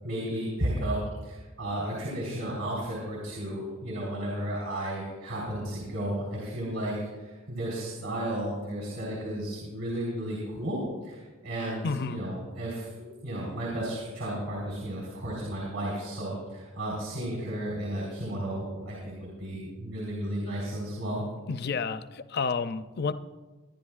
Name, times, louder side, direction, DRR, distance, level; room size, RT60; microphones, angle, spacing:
voice 1, 0.0-21.3, right 1 dB, 70° right, -4 dB, 3.9 m, -33 dB
voice 2, 11.8-12.2 21.5-23.1, left 5 dB, 50° left, 12 dB, 0.5 m, -30 dB
24.5 x 10.5 x 2.4 m, 1.3 s
head